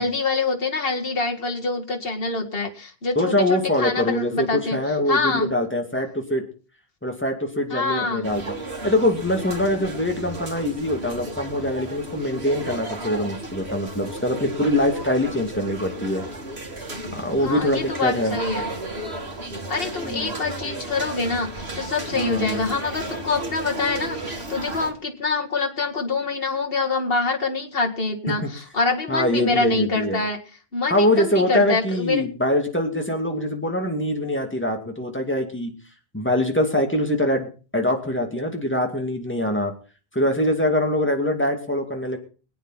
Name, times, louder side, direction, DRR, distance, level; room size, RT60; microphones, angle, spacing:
voice 1, 0.0-4.8 5.1-5.5 7.7-8.3 17.4-18.7 19.7-30.4 30.7-32.2, left 3 dB, 65° left, 1 dB, 2.2 m, -25 dB
voice 2, 3.1-6.4 7.0-8.4 8.8-16.2 17.1-18.4 20.1-20.3 22.1-22.7 28.3-28.5 29.1-30.2 30.9-35.7 36.1-39.7 40.1-42.2, left 1 dB, 10° left, 3 dB, 2.6 m, -23 dB
sound 1, 8.2-24.9, right 2 dB, 90° right, 2.9 m, -34 dB
22.0 x 9.3 x 4.2 m, 0.36 s
omnidirectional pair, 1.1 m